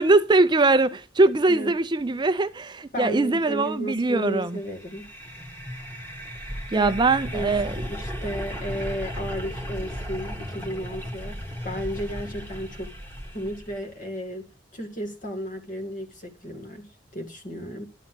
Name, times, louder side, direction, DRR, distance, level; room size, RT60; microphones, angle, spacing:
voice 1, 0.0-4.6 6.7-7.7, right 3 dB, 25° right, 0.4 m, -21 dB
voice 2, 2.9-5.1 6.7-6.9 7.3-7.6 7.9-11.4 11.6-13.0 13.3-14.5 14.7-17.8, equal, 45° left, 2.0 m, -33 dB
sound 1, 4.7-13.8, equal, 10° left, 1.9 m, -35 dB
11.5 x 4.1 x 7.4 m
head